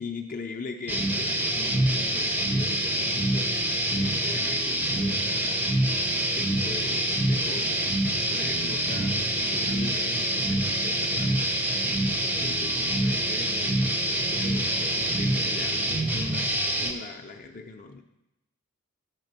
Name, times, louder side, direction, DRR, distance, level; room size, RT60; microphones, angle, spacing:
voice 1, 0.0-3.6 3.9-5.6 6.2-8.0 8.3-11.3 12.2-18.0, left 4 dB, 40° left, 3 dB, 0.5 m, -41 dB
sound 1, 0.9-16.9, right 1 dB, 10° right, 0.5 m, -26 dB
9.0 x 3.4 x 6.5 m, 0.86 s
head